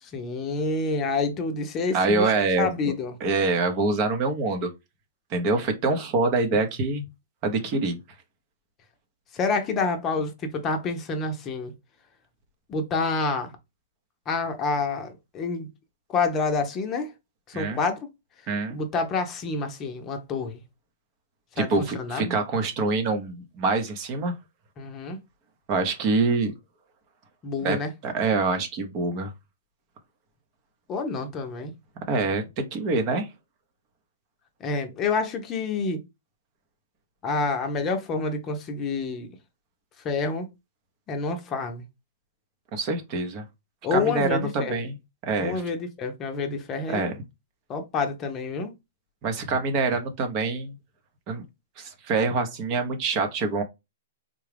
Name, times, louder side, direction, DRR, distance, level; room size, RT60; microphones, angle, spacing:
voice 1, 0.0-3.1 9.3-11.7 12.7-13.5 14.3-15.7 16.1-17.1 17.5-18.1 18.7-20.6 21.6-22.3 24.8-25.2 27.4-27.9 30.9-31.7 34.6-36.0 37.2-39.4 40.0-40.5 41.1-41.8 43.8-44.8 45.4-47.1 47.7-48.7, left 4 dB, 25° left, 0.7 m, -28 dB
voice 2, 1.9-2.7 3.2-4.7 5.3-7.0 7.4-8.0 17.5-17.8 18.5-18.8 21.6-24.3 25.7-26.5 27.6-27.8 28.0-29.3 32.1-33.3 42.7-43.4 43.9-44.9 45.2-45.6 46.9-47.2 49.2-50.8 51.3-51.4 51.8-53.6, right 3 dB, 35° right, 0.8 m, -25 dB
3.7 x 2.3 x 3.3 m
hypercardioid pair, 140°, 0 cm